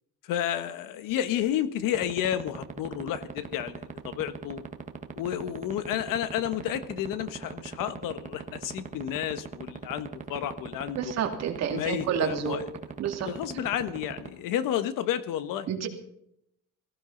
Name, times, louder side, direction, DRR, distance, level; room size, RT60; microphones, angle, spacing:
voice 1, 0.2-4.6 5.1-11.1 11.7-12.6 13.2-15.7, left 11 dB, 75° left, 12 dB, 1.4 m, -31 dB
sound 1, 1.9-14.3, right 6 dB, 20° right, 1.5 m, -36 dB
voice 2, 11.0-12.6 13.0-13.3 15.7-15.9, right 8 dB, 50° right, 4 dB, 2.5 m, -29 dB
18.0 x 15.0 x 4.0 m, 0.74 s
cardioid pair, 165°, 33 cm